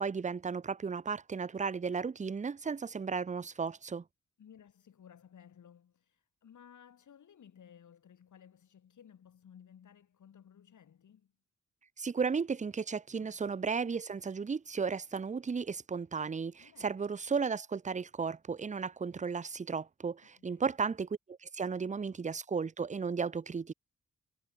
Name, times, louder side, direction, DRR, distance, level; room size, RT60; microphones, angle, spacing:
voice 1, 0.0-4.0 12.0-23.7, right 5 dB, 25° right, 0.6 m, -34 dB
voice 2, 4.4-11.3 13.2-13.4 16.6-17.0 20.5-20.8, left 8 dB, 80° left, 6.2 m, -58 dB
wide cardioid pair, 105°, 30 cm